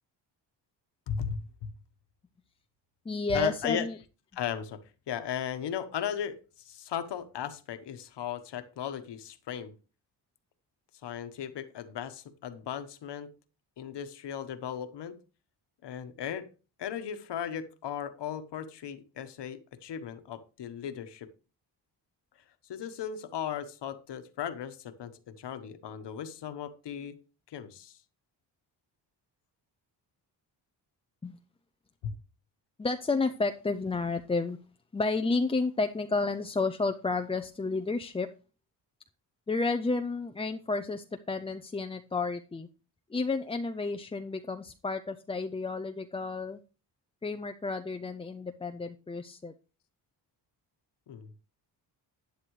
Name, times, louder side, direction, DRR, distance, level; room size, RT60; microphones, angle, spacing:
voice 1, 1.1-1.7 3.3-3.9 4.3-4.8 5.1-6.3 6.6-9.7 11.0-13.3 13.8-15.2 15.8-16.5 16.8-21.3 22.7-27.1 27.5-28.0 32.0-32.1 51.1-51.3, left 8 dB, 70° left, 10 dB, 1.2 m, -36 dB
voice 2, 3.1-4.0 31.2-31.4 32.8-34.6 34.9-38.3 39.5-42.7 43.1-46.6 47.2-49.5, left 3 dB, 15° left, 7 dB, 0.4 m, -31 dB
11.5 x 9.6 x 3.2 m, 0.34 s
cardioid pair, 95°, 44 cm